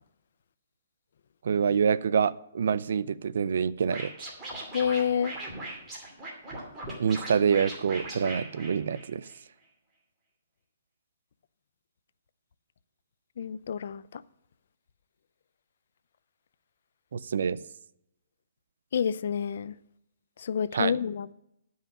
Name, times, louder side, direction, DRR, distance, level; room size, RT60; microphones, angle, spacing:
voice 1, 1.4-4.1 7.0-9.3 17.1-17.6 20.7-20.9, right 7 dB, 65° right, 0.5 m, -26 dB
Scratching (performance technique), 3.9-9.4, right 2 dB, 15° right, 2.4 m, -39 dB
voice 2, 4.7-5.4 13.4-14.2 18.9-19.7 20.4-21.3, left 7 dB, 55° left, 0.4 m, -28 dB
11.0 x 5.6 x 7.4 m
hypercardioid pair, 170°, 0 cm